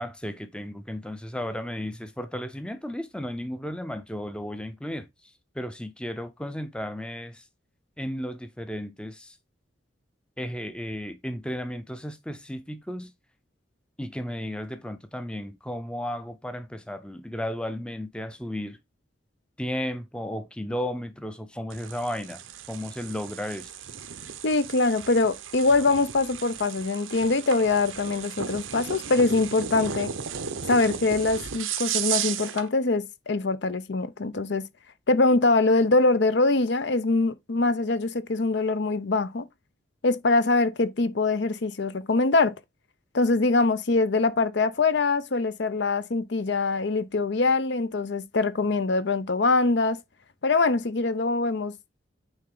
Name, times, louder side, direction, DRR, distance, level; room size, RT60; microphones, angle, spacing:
voice 1, 0.0-7.5 8.0-9.4 10.4-13.1 14.0-18.8 19.6-22.4 22.7-23.7, equal, 5° left, 0.6 m, -34 dB
sound 1, 21.7-32.7, right 8 dB, 90° right, 0.9 m, -35 dB
voice 2, 24.4-30.1 30.7-34.6 35.1-39.4 40.0-42.5 43.1-50.0 50.4-51.7, left 3 dB, 60° left, 0.6 m, -23 dB
8.9 x 3.7 x 3.8 m
head